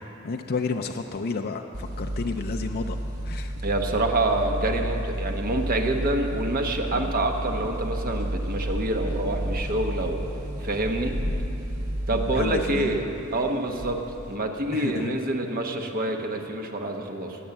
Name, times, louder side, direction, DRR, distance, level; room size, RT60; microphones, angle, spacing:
voice 1, 0.2-3.5 6.9-7.1 12.1-13.0 14.7-15.2, left 4 dB, 45° left, 5 dB, 0.5 m, -31 dB
sound 1, 1.7-14.4, right 1 dB, 85° right, 1.6 m, -31 dB
voice 2, 3.6-10.2 10.6-11.1 12.1-13.0 13.3-14.0 14.3-17.4, right 2 dB, 40° right, 3 dB, 1.2 m, -27 dB
19.5 x 7.3 x 7.2 m, 3.0 s
head